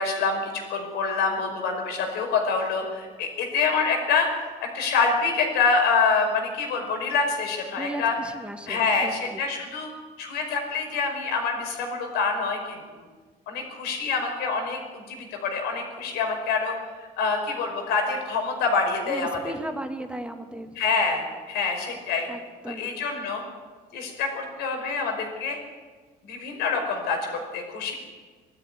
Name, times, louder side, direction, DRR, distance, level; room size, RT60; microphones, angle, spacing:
voice 1, 0.0-8.1 8.7-9.9 10.2-12.8 13.5-19.4 20.8-22.3 22.7-23.4 23.9-25.6 26.2-27.9, left 4 dB, 85° left, 3 dB, 5.2 m, -26 dB
voice 2, 7.8-9.4 19.1-20.7 22.3-22.9, right 1 dB, 5° right, 5 dB, 2.3 m, -36 dB
20.0 x 13.0 x 9.8 m, 1.4 s
cardioid pair, 105°, 17 cm